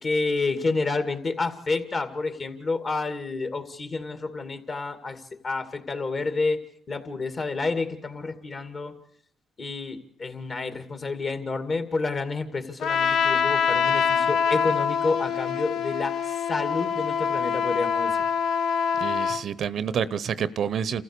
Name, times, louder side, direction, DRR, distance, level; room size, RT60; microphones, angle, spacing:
voice 1, 0.0-9.0 9.6-18.2, left 3 dB, 40° left, 2.4 m, -29 dB
Trumpet, 12.8-19.4, left 7 dB, 70° left, 0.9 m, -25 dB
voice 2, 19.0-21.0, right 8 dB, 60° right, 0.7 m, -28 dB
27.5 x 14.5 x 6.8 m
cardioid pair, 90°, 0 cm